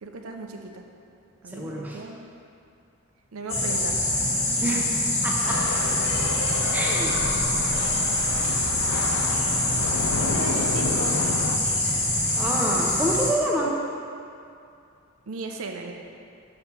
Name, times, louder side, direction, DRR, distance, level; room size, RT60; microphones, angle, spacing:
voice 1, 0.0-0.8 1.4-2.4 3.3-4.1 7.0-7.3 10.2-11.1 15.3-15.9, right 3 dB, 75° right, 3 dB, 0.6 m, -37 dB
voice 2, 1.5-2.0 4.6-4.9 5.2-5.8 6.7-7.3 12.4-13.7, right 1 dB, 5° right, -3 dB, 0.7 m, -27 dB
sound 1, 3.5-13.3, left 1 dB, 30° left, 1.2 m, -25 dB
sound 2, 5.4-11.6, left 4 dB, 80° left, 0.5 m, -31 dB
sound 3, 5.5-12.5, left 1 dB, 55° left, 1.3 m, -39 dB
5.8 x 5.4 x 5.9 m, 2.5 s
head